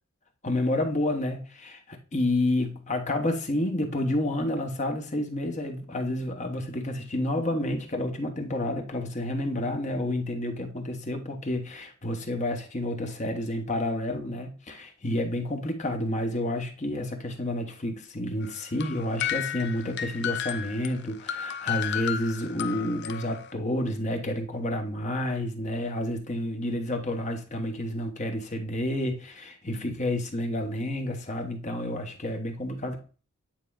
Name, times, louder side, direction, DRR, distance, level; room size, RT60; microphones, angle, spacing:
voice 1, 0.4-33.0, left 1 dB, 35° left, 1.1 m, -30 dB
sound 1, 18.4-23.5, left 10 dB, 55° left, 0.5 m, -33 dB
9.1 x 4.4 x 2.4 m
head